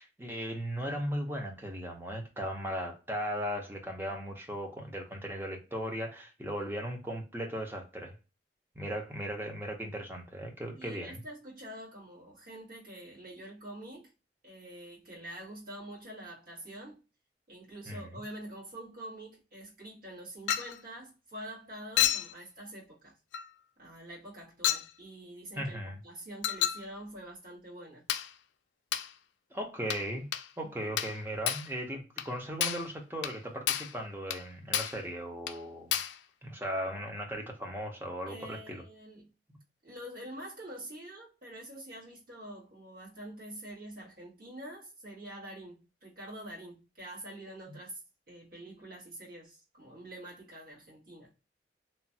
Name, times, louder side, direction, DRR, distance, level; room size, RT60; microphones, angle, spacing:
voice 1, 0.0-8.1 8.8-11.2 17.9-18.1 25.6-26.0 29.5-30.3 30.6-36.0 36.4-38.8, equal, 15° right, 0.6 m, -37 dB
voice 2, 10.7-14.1 14.4-17.0 17.5-23.1 23.8-28.0 30.6-30.7 38.3-39.3 39.8-48.0 48.3-51.3, right 1 dB, 55° right, 1.7 m, -46 dB
Chink clink, 20.5-20.8 22.0-22.3 23.3-23.5 24.6-24.9 26.4-26.9 28.1-28.3 28.9-29.1 29.9-30.1 30.3-30.5 31.0-31.2 31.5-31.7 32.2-32.3 32.6-32.9 33.2-33.4 33.7-34.0 34.3-34.4 34.7-35.0 35.5-35.6 35.9-36.2, left 10 dB, 90° left, 0.3 m, -30 dB
3.0 x 2.3 x 2.6 m
head